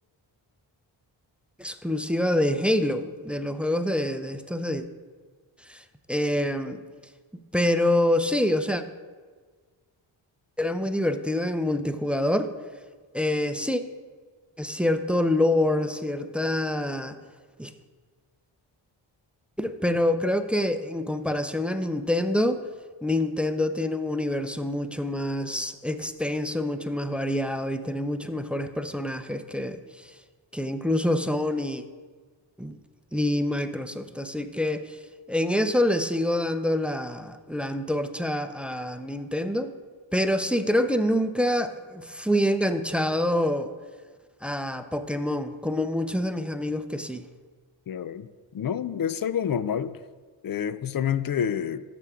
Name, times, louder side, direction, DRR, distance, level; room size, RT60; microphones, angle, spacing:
voice 1, 1.6-4.8 5.7-5.8 6.1-6.8 7.5-8.8 10.6-12.5 13.1-13.8 14.6-17.2 17.6-17.7 19.6-22.6 23.0-29.8 30.5-31.8 32.6-32.8 33.1-35.0 35.3-39.7 40.1-43.7 44.4-47.2, left 1 dB, ahead, 10 dB, 0.6 m, -26 dB
voice 2, 47.9-48.3 48.5-49.9 50.4-51.8, left 8 dB, 45° left, 14 dB, 0.5 m, -28 dB
13.5 x 6.0 x 3.6 m, 1.5 s
cardioid pair, 50°, 48 cm